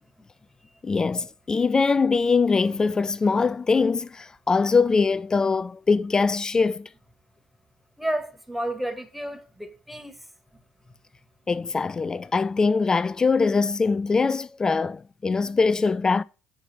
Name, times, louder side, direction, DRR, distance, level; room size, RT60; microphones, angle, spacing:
voice 1, 0.8-6.9 11.5-16.2, left 4 dB, 25° left, 0.4 m, -22 dB
voice 2, 8.0-10.2, right 1 dB, 5° right, 2.0 m, -31 dB
8.0 x 5.8 x 5.7 m
hypercardioid pair, 60°, 3 cm